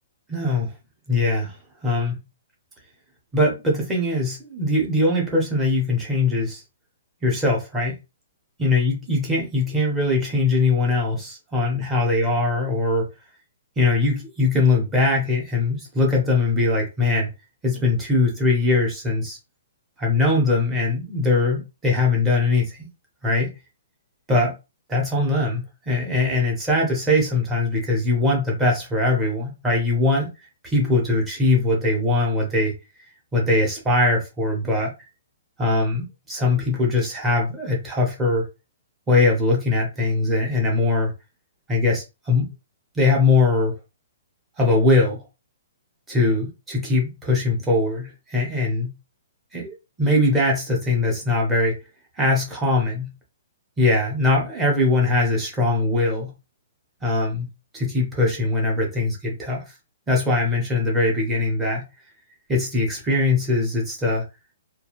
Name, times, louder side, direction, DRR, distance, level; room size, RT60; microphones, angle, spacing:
voice 1, 0.3-0.7 1.1-1.6 1.8-2.2 3.3-6.6 7.2-8.0 8.6-13.1 13.8-17.3 17.6-19.4 20.0-22.9 23.2-23.5 24.3-24.5 24.9-30.3 30.6-32.7 33.3-34.9 35.6-38.5 39.1-41.1 41.7-42.5 42.9-43.7 44.6-45.2 46.1-48.9 49.5-51.8 52.2-53.1 53.8-56.3 57.0-57.5 57.7-59.6 60.1-61.8 62.5-64.2, left 2 dB, 10° right, 0.8 m, -21 dB
2.4 x 2.2 x 2.9 m
hypercardioid pair, 170°, 0 cm